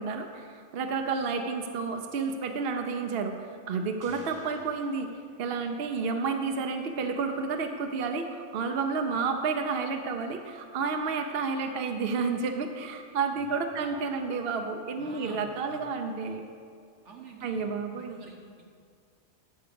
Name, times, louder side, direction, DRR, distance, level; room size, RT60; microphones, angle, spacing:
voice 1, 0.0-5.1 5.4-16.4 17.4-18.2, right 4 dB, 60° right, 5 dB, 0.9 m, -31 dB
sound 1, 4.0-6.3, equal, 15° right, 1.2 m, -53 dB
voice 2, 15.0-15.4 15.7-15.8 17.0-17.6 17.9-18.6, right 4 dB, 75° right, 1 dB, 1.7 m, -48 dB
13.5 x 4.9 x 6.8 m, 2.1 s
omnidirectional pair, 1.2 m